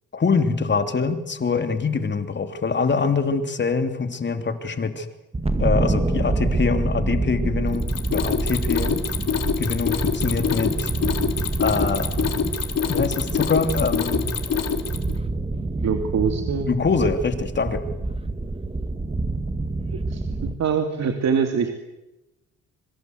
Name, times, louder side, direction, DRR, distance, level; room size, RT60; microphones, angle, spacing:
voice 1, 0.1-5.1 5.6-9.0 9.6-10.9 11.6-12.1 12.9-14.3 16.7-17.8, left 4 dB, 35° left, 7 dB, 3.1 m, -24 dB
sound 1, 5.3-20.6, right 2 dB, 20° right, 1.8 m, -27 dB
Mechanisms, 7.7-15.2, left 7 dB, 55° left, 3.7 m, -26 dB
voice 2, 15.8-16.7 20.1-20.2 20.6-21.7, right 6 dB, 60° right, 5 dB, 2.8 m, -23 dB
26.0 x 24.0 x 8.1 m, 0.98 s
cardioid pair, 90°, 30 cm